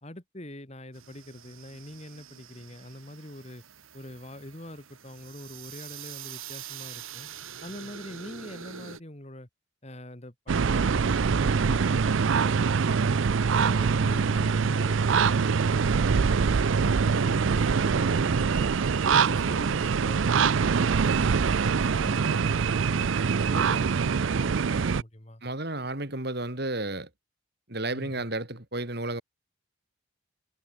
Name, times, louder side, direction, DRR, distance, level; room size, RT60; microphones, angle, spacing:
voice 1, 0.0-3.6 3.9-7.3 7.6-9.5 9.8-13.2 13.5-16.5 16.7-18.7 19.0-21.3 21.6-23.1 23.5-25.4 27.9-28.2, left 1 dB, 30° left, 2.8 m, -44 dB
sound 1, 0.9-9.0, right 8 dB, 85° right, 4.1 m, -45 dB
sound 2, 10.5-25.0, right 5 dB, 70° right, 0.5 m, -24 dB
voice 2, 25.4-27.1 27.7-29.2, right 2 dB, 50° right, 3.4 m, -32 dB
head